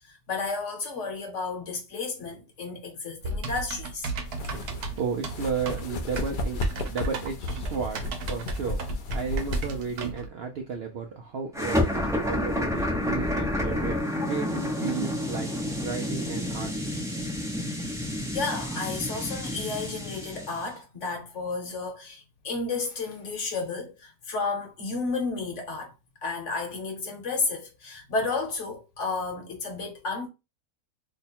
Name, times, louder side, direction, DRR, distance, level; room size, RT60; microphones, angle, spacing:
voice 1, 0.1-4.1 18.3-25.9 26.2-30.3, left 4 dB, 55° left, 1.3 m, -32 dB
Typing, 3.2-10.3, right 4 dB, 90° right, 1.3 m, -35 dB
sound 1, 4.3-10.1, left 1 dB, 85° left, 0.4 m, -33 dB
voice 2, 4.8-8.8 9.1-15.5 15.8-16.7, right 5 dB, 65° right, 0.6 m, -33 dB
sound 2, 11.5-20.7, left 1 dB, 5° right, 0.4 m, -29 dB
3.1 x 2.2 x 4.2 m
omnidirectional pair, 1.6 m